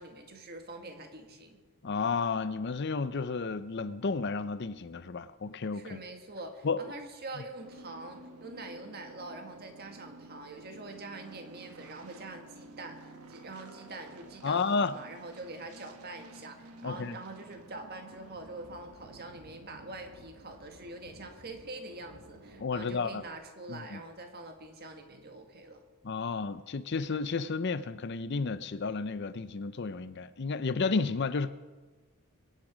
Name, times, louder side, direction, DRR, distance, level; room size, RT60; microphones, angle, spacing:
voice 1, 0.0-1.6 5.7-25.8, right 2 dB, 45° right, 1.7 m, -45 dB
voice 2, 1.8-6.0 6.6-6.8 14.4-15.0 16.8-17.2 22.6-23.2 23.7-24.0 26.0-31.5, left 4 dB, 50° left, 0.5 m, -32 dB
sound 1, 7.6-23.3, right 2 dB, 85° right, 1.2 m, -52 dB
22.5 x 9.1 x 5.1 m
head